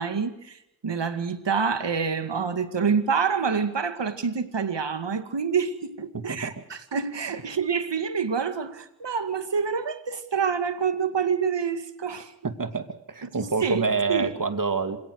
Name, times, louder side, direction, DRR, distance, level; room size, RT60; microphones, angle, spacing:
voice 1, 0.0-12.3 13.2-13.8 14.1-14.3, right 6 dB, 70° right, 9 dB, 2.2 m, -27 dB
voice 2, 6.1-6.6 12.4-15.0, right 4 dB, 45° right, 8 dB, 2.5 m, -27 dB
27.0 x 17.0 x 6.5 m, 0.83 s
cardioid pair, 50°, 44 cm